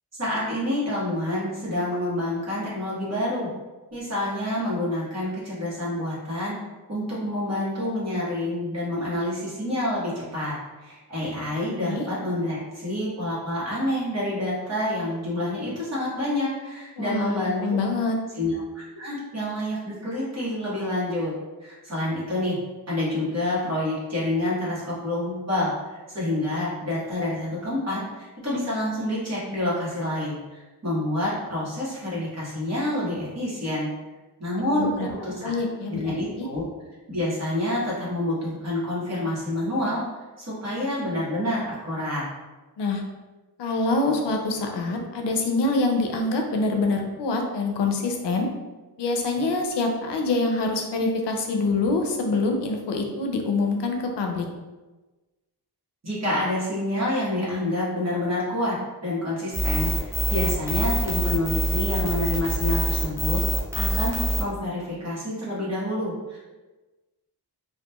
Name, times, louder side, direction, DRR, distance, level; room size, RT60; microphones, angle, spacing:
voice 1, 0.2-3.5 3.9-6.6 6.9-17.7 18.3-21.3 21.6-22.6 22.9-33.9 34.4-34.9 35.2-35.5 35.9-36.6 37.1-40.0 40.4-42.3 56.0-58.7 59.0-63.4 63.7-66.4, left 1 dB, 40° right, -8 dB, 1.1 m, -28 dB
voice 2, 17.0-18.2 34.8-35.1 35.4-36.5 42.8-43.0 43.6-48.5 49.0-54.5, left 3 dB, 90° left, 3 dB, 0.5 m, -25 dB
sound 1, 59.5-64.4, equal, 5° right, 0.6 m, -25 dB
2.9 x 2.3 x 2.2 m, 1.2 s
wide cardioid pair, 95°, 40 cm